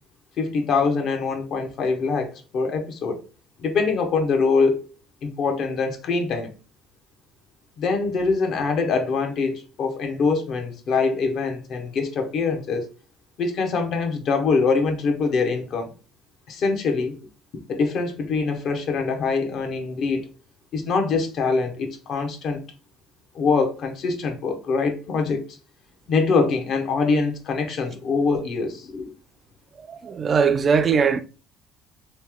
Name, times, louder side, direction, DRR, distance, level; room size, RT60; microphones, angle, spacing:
voice 1, 0.4-3.2 3.6-4.8 5.2-6.5 7.8-12.9 13.4-15.9 16.5-17.1 17.7-20.3 20.7-22.6 23.3-25.5 26.1-29.1, left 4 dB, 55° left, 0.8 m, -24 dB
voice 2, 29.8-31.2, right 6 dB, 35° right, 0.3 m, -20 dB
3.1 x 2.8 x 3.5 m
cardioid pair, 115°, 0 cm